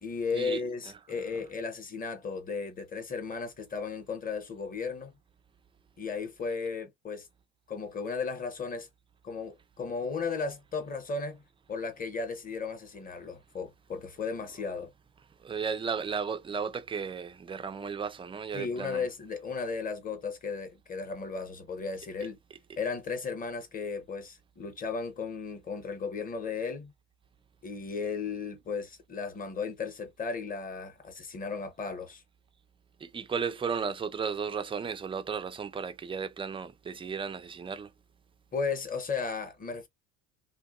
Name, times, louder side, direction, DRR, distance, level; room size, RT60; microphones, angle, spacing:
voice 1, 0.0-5.1 6.0-7.3 7.7-8.9 9.2-11.4 11.7-14.9 18.5-22.4 22.8-26.9 27.6-32.2 38.5-39.9, left 5 dB, 20° left, 0.9 m, -35 dB
voice 2, 15.4-19.0 33.0-37.9, right 6 dB, 15° right, 0.4 m, -34 dB
2.7 x 2.4 x 2.4 m
supercardioid pair, 105°, 37 cm